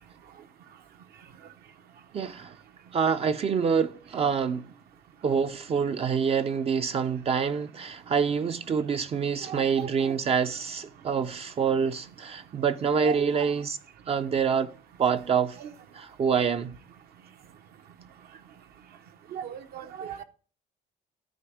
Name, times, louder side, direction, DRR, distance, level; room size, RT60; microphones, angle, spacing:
voice 1, 2.1-2.6 2.9-4.7 5.2-13.8 14.1-14.7 15.0-15.6 15.9-16.8, right 6 dB, 35° right, 0.5 m, -26 dB
voice 2, 9.5-10.1 13.0-13.5 15.6-15.7 19.3-20.2, right 10 dB, 65° right, 0.9 m, -36 dB
12.5 x 4.2 x 4.8 m
cardioid pair, 110°, 17 cm